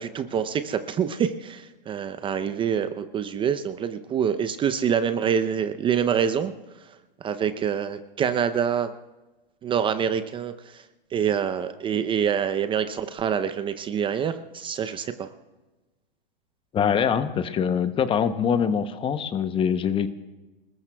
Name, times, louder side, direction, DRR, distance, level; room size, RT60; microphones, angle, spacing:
voice 1, 0.0-6.5 6.9-7.0 7.2-8.9 9.6-10.8 11.1-15.3, right 8 dB, 15° right, 10 dB, 0.6 m, -26 dB
voice 2, 16.7-20.1, left 7 dB, 20° left, 12 dB, 0.8 m, -24 dB
27.5 x 20.0 x 2.3 m, 1.1 s
hypercardioid pair, 125°, 29 cm